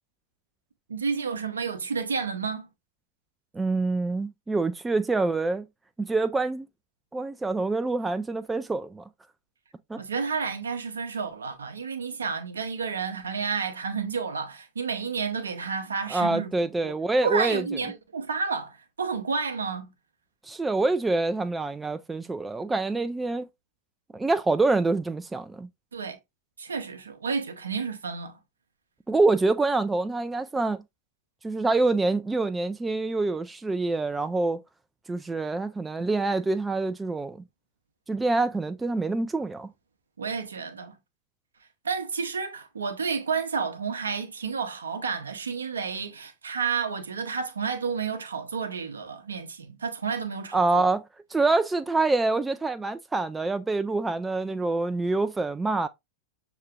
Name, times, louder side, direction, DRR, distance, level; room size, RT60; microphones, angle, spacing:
voice 1, 0.9-2.7 10.0-16.9 17.2-19.9 25.9-26.2 26.6-28.4 40.2-40.9 41.8-50.8, right 5 dB, 70° right, 0.7 m, -31 dB
voice 2, 3.5-5.6 6.0-6.7 7.1-9.0 9.9-10.0 16.1-17.7 20.5-23.5 24.1-25.7 29.1-30.8 31.4-34.6 35.1-37.4 38.1-39.7 50.5-51.0 51.3-55.9, right 3 dB, 10° right, 0.3 m, -26 dB
6.4 x 2.9 x 2.3 m
figure-of-eight pair, 90°, 0 cm